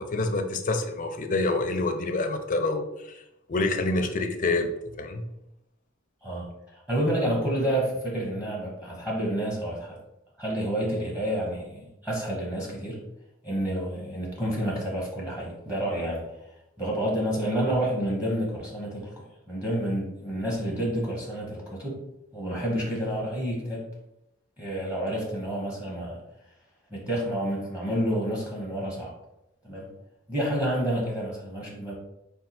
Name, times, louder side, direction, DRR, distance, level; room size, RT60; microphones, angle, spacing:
voice 1, 0.0-3.2 3.5-4.7 5.0-5.3, left 2 dB, 40° left, 5 dB, 0.4 m, -27 dB
voice 2, 6.2-10.0 10.4-13.0 13.4-16.2 16.8-19.1 19.5-22.0 22.3-23.8 24.6-26.2 26.9-29.1 29.6-29.8 30.3-31.9, right 1 dB, 5° right, -3 dB, 0.8 m, -29 dB
4.3 x 2.3 x 4.1 m, 0.86 s
head